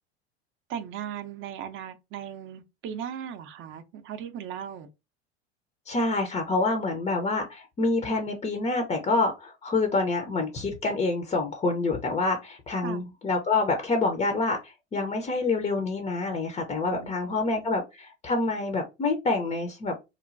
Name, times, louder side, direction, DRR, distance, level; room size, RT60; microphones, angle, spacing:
voice 1, 0.7-4.9 12.8-13.1 16.9-17.6, right 9 dB, 35° right, 0.6 m, -38 dB
voice 2, 5.9-19.9, left 3 dB, 20° left, 0.6 m, -27 dB
3.0 x 2.2 x 2.5 m
hypercardioid pair, 80°, 33 cm